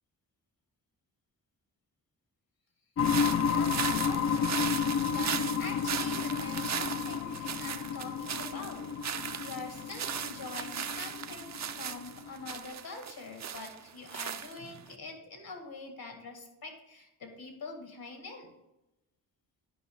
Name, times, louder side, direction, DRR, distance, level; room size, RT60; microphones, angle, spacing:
sound 1, 3.0-12.5, left 7 dB, 40° left, 0.4 m, -32 dB
sound 2, 3.0-14.9, right 8 dB, 45° right, 0.5 m, -38 dB
voice 1, 3.3-4.7 5.1-8.8 9.4-18.5, left 3 dB, 70° left, 3 dB, 2.0 m, -45 dB
10.0 x 5.4 x 3.7 m, 0.93 s
cardioid pair, 70°, 38 cm